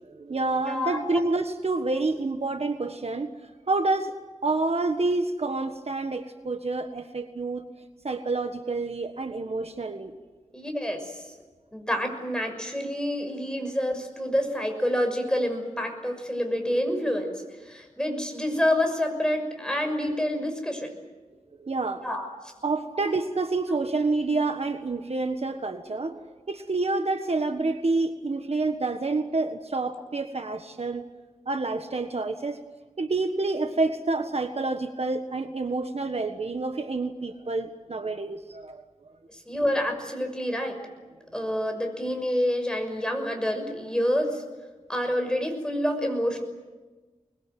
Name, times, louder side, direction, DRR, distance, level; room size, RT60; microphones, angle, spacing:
voice 1, 0.0-3.3 3.7-4.1 4.4-7.6 8.0-10.2 21.6-22.0 22.6-31.0 31.5-32.6 33.0-38.8, right 3 dB, 50° right, 7 dB, 1.5 m, -28 dB
voice 2, 0.7-1.2 10.5-11.3 11.7-17.3 17.6-21.0 22.0-22.3 23.0-23.1 39.3-40.8 41.3-44.4 44.9-46.4, left 1 dB, 5° left, 4 dB, 6.1 m, -28 dB
25.0 x 21.5 x 9.3 m, 1.3 s
wide cardioid pair, 85°, 13 cm